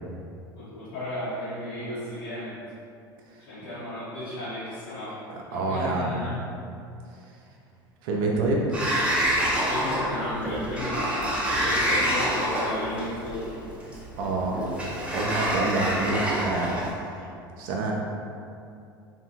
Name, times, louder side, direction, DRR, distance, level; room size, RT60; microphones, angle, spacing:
voice 1, 0.5-2.5 3.4-5.2 5.5-6.4 9.4-13.5, left 1 dB, 75° left, -16 dB, 1.1 m, -34 dB
voice 2, 5.3-6.2 8.0-8.8 14.2-14.7 15.1-17.2 17.6-17.9, right 2 dB, 65° right, -1 dB, 0.4 m, -27 dB
Sliding door, 8.7-16.9, equal, 10° right, 0.6 m, -27 dB
2.6 x 2.4 x 2.8 m, 2.5 s
hypercardioid pair, 75°, 12 cm